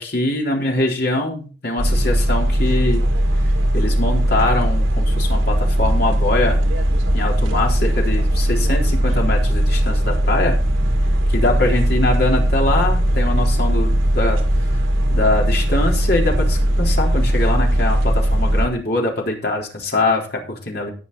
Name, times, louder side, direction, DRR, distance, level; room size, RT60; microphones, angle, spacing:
voice 1, 0.0-3.0 3.7-6.6 7.1-10.5 11.3-14.4 15.1-20.9, left 2 dB, 55° left, 0 dB, 3.8 m, -22 dB
sound 1, 1.8-18.7, equal, 80° right, 2.1 m, -18 dB
18.5 x 6.3 x 4.1 m, 0.37 s
head